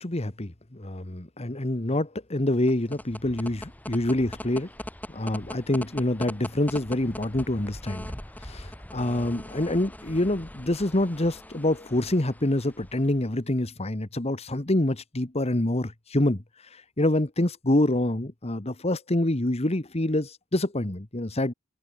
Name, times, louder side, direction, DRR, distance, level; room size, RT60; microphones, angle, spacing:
voice 1, 0.0-4.7 5.1-8.1 8.4-21.5, left 1 dB, 30° left, 1.5 m, -26 dB
signals tel, 2.5-13.3, left 1 dB, 10° left, 1.9 m, -41 dB
open air
head